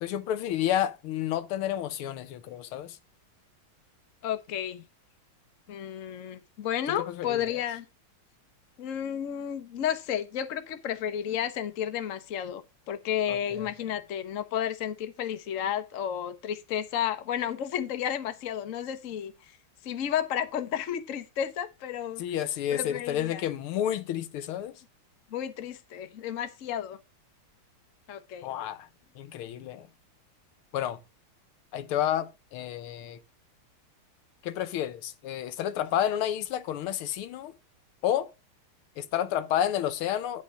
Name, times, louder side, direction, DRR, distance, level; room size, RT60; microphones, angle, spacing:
voice 1, 0.0-3.0 6.9-7.6 13.3-13.7 22.2-24.7 28.4-28.9 29.2-29.9 30.7-31.0 31.7-33.2 34.4-37.5 38.0-38.3 39.0-40.4, left 11 dB, 80° left, 1.7 m, -30 dB
voice 2, 4.2-4.8 5.7-7.8 8.8-12.6 12.9-19.3 19.8-22.2 22.7-23.4 25.3-27.0 28.1-28.5, left 9 dB, 50° left, 1.1 m, -32 dB
11.0 x 4.0 x 6.3 m
omnidirectional pair, 2.3 m